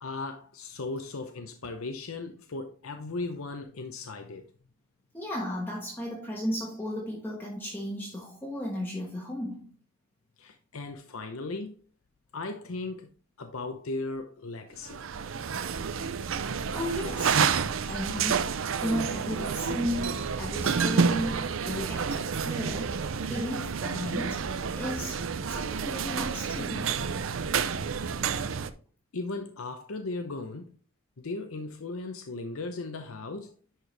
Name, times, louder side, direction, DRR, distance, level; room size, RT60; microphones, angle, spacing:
voice 1, 0.0-4.5 10.4-11.8 12.3-13.1 13.4-15.0 28.3-28.4 29.1-30.7 31.2-33.5, left 3 dB, 85° left, 0.8 m, -37 dB
voice 2, 5.1-9.7 16.7-17.5 17.8-18.5 18.7-23.0 23.3-24.5 24.7-27.0, equal, 10° left, 1.3 m, -34 dB
sound 1, 14.8-28.7, right 6 dB, 70° right, 0.6 m, -29 dB
11.0 x 4.5 x 3.3 m
head